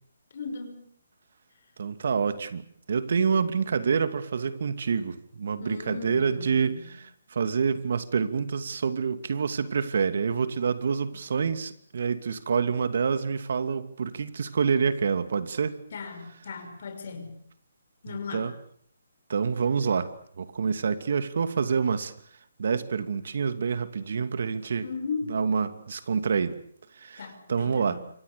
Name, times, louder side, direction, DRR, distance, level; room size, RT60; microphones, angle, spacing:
voice 1, 0.3-0.9 5.6-6.9 15.9-17.3 18.0-18.5 24.8-25.4 27.2-28.0, left 5 dB, 60° left, 6 dB, 6.0 m, -37 dB
voice 2, 1.8-7.0 7.3-15.8 18.1-18.5 19.3-20.1 20.4-22.1 22.6-24.9 25.3-26.6 27.0-28.0, right 6 dB, 65° right, 11 dB, 2.6 m, -27 dB
27.5 x 24.0 x 7.1 m, 0.64 s
hypercardioid pair, 155°, 0 cm